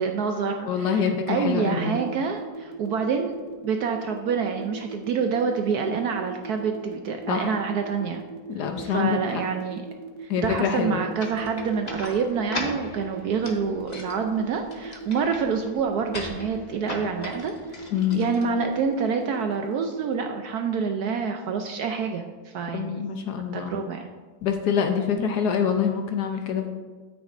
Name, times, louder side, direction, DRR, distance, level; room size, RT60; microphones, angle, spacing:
voice 1, 0.0-3.3 3.6-8.2 8.8-9.9 10.2-22.3 22.5-23.1 23.5-24.1, right 5 dB, 70° right, 4 dB, 0.9 m, -27 dB
voice 2, 0.6-2.0 7.3-7.6 8.5-9.4 10.3-11.1 17.9-18.2 22.7-23.7 24.4-26.7, left 7 dB, 70° left, 5 dB, 1.1 m, -25 dB
sound 1, 1.8-20.2, right 4 dB, 45° right, 1.1 m, -39 dB
sound 2, 11.2-19.0, left 2 dB, 40° left, 0.6 m, -39 dB
9.4 x 8.2 x 2.5 m, 1.4 s
omnidirectional pair, 2.0 m